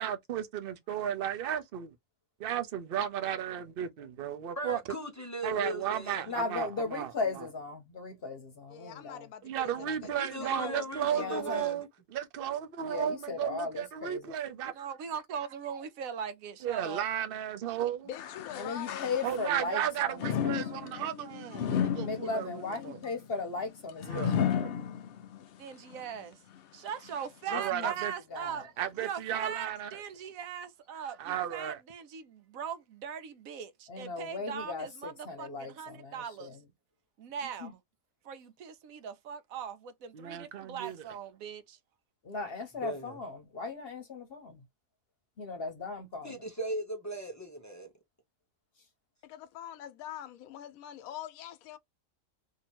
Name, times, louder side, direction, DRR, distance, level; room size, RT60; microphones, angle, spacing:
voice 1, 0.0-2.0 2.4-4.8 5.4-7.5 9.4-14.7 16.6-18.1 19.2-23.0 24.0-24.4 24.6-24.7 27.5-28.1 28.8-30.0 31.2-31.8 40.1-41.1, right 10 dB, 50° right, 0.7 m, -34 dB
voice 2, 4.6-6.4 10.3-11.8 42.8-43.2 46.2-47.9, equal, 20° left, 0.6 m, -38 dB
voice 3, 6.3-9.3 11.1-11.6 12.8-14.3 18.6-20.6 22.0-24.5 27.5-27.9 28.3-28.6 33.9-36.6 37.6-37.7 42.2-44.6 45.4-46.4, left 4 dB, 50° left, 0.9 m, -37 dB
voice 4, 8.7-11.6 18.1-19.1 49.2-51.8, left 10 dB, 85° left, 1.0 m, -44 dB
voice 5, 14.7-17.0 25.6-26.4 26.7-28.7 29.0-36.6 37.2-37.8 38.2-41.8, right 7 dB, 80° right, 1.1 m, -40 dB
sound 1, 18.1-19.7 20.2-25.4 25.9-26.0 26.9-27.0, left 8 dB, 65° left, 0.6 m, -33 dB
2.8 x 2.7 x 4.3 m
omnidirectional pair, 1.4 m